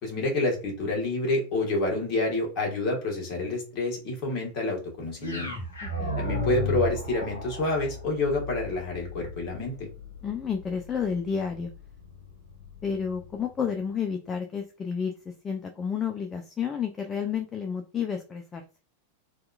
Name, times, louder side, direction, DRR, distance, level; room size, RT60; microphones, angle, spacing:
voice 1, 0.0-5.5 6.2-9.9, left 2 dB, 35° left, -1 dB, 1.2 m, -28 dB
sound 1, 5.2-13.4, left 2 dB, 70° left, 1.1 m, -35 dB
voice 2, 5.8-6.2 10.2-11.7 12.8-15.1 15.4-18.6, left 6 dB, 20° left, 4 dB, 0.3 m, -31 dB
2.7 x 2.3 x 2.3 m, 0.34 s
figure-of-eight pair, 90°, 0 cm